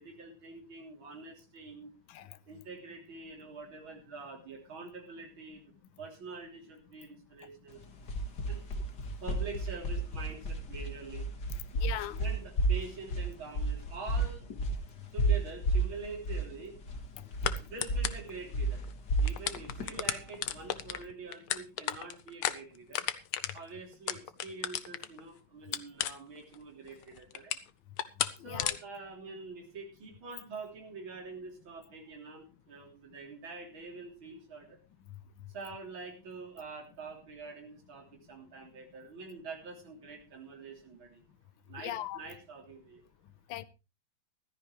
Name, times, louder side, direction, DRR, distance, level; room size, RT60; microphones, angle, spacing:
voice 1, 0.0-1.9 2.5-5.6 6.0-7.8 8.5-8.6 9.2-11.3 12.2-14.5 15.1-16.8 17.6-18.8 19.2-23.1 23.5-27.6 28.4-34.8 35.5-41.2 41.7-43.0, right 4 dB, 70° right, 0 dB, 4.1 m, -45 dB
sound 1, 7.7-21.0, right 2 dB, 55° left, 2.3 m, -33 dB
voice 2, 11.7-12.2 17.2-17.3 28.4-28.8 35.1-35.2 41.8-42.2 43.5-43.6, left 13 dB, 70° left, 14 dB, 1.6 m, -39 dB
sound 2, 15.6-15.8 17.4-17.6 17.8-18.3 18.8-18.9 19.2-25.2 25.7-26.5 26.9-27.7 28.0-28.3 28.6-28.8, left 11 dB, 90° left, 1.8 m, -33 dB
15.5 x 14.0 x 3.3 m, 0.29 s
omnidirectional pair, 2.3 m